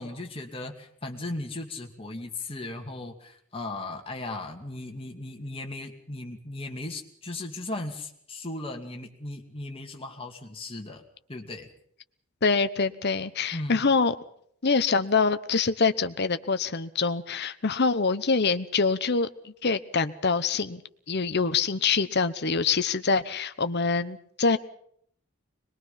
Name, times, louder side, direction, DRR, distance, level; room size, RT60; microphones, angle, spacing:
voice 1, 0.0-11.0 11.3-11.7 13.5-13.9, left 2 dB, 25° left, 2 dB, 2.5 m, -37 dB
voice 2, 12.4-14.1 14.6-20.8 21.1-24.6, left 4 dB, 50° left, 11 dB, 0.9 m, -25 dB
23.5 x 21.0 x 5.7 m, 0.65 s
head